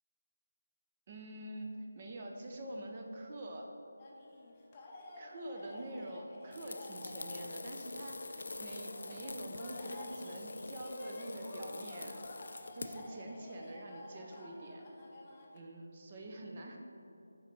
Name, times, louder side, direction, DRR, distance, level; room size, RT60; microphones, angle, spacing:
voice 1, 1.1-3.7 5.2-12.2 12.7-15.1 15.5-16.8, right 1 dB, 30° right, 1 dB, 0.7 m, -45 dB
sound 1, 4.0-15.6, left 2 dB, 20° left, 0.7 m, -52 dB
sound 2, 6.5-13.1, left 3 dB, 55° left, 0.4 m, -45 dB
6.6 x 4.6 x 4.7 m, 2.9 s
figure-of-eight pair, 160°, 0 cm